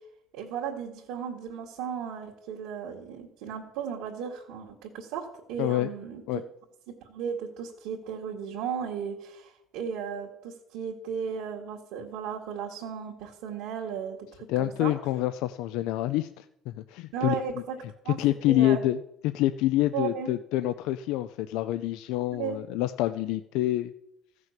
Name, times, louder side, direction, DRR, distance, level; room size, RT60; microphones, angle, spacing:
voice 1, 0.3-6.4 7.0-14.9 17.1-17.8 18.0-18.2 18.5-18.8 19.9-20.3 22.3-22.6, right 7 dB, 80° right, -3 dB, 2.0 m, -35 dB
voice 2, 5.6-5.9 6.3-6.4 14.5-17.4 18.1-23.9, left 14 dB, 80° left, 11 dB, 0.5 m, -27 dB
14.5 x 6.2 x 7.5 m, 0.81 s
cardioid pair, 130°, 0 cm